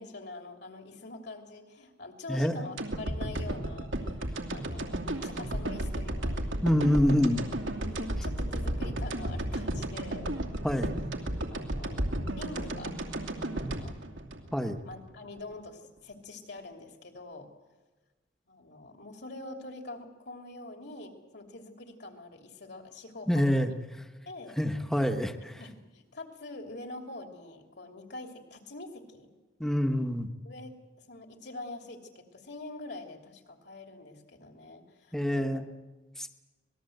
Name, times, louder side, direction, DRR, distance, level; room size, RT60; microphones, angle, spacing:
voice 1, 0.0-6.5 7.8-10.3 11.5-12.0 12.3-12.9 13.5-14.2 14.8-17.5 18.5-23.8 24.3-24.6 25.6-29.3 30.4-35.7, left 2 dB, 60° left, 4 dB, 3.1 m, -45 dB
voice 2, 2.3-2.6 6.6-7.4 10.6-10.9 14.5-14.8 23.3-23.7 24.6-25.6 29.6-30.3 35.1-35.7 36.2-36.3, equal, 5° left, 6 dB, 1.2 m, -26 dB
sound 1, 2.8-15.0 15.4-15.5, right 1 dB, 90° right, 2.6 m, -33 dB
26.0 x 19.5 x 7.9 m, 1.2 s
head